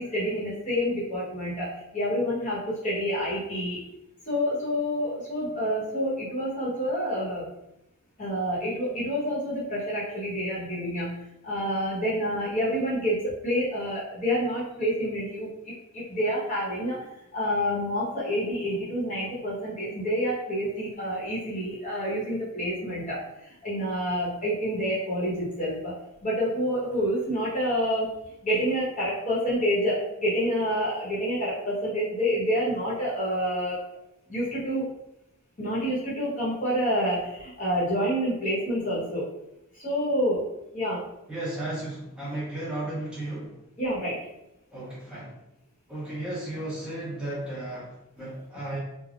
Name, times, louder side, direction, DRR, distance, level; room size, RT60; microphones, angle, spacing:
voice 1, 0.0-1.7 1.9-3.8 4.3-7.5 8.2-11.1 11.4-17.0 17.3-23.2 23.4-25.9 26.2-28.1 28.4-33.8 34.3-34.9 35.6-39.3 39.8-40.5 40.7-41.0 43.8-44.2, equal, 35° left, -7 dB, 1.0 m, -28 dB
voice 2, 41.3-43.6 44.7-45.3 45.9-48.8, right 1 dB, 5° right, -9 dB, 1.0 m, -34 dB
3.5 x 2.1 x 2.4 m, 0.85 s
head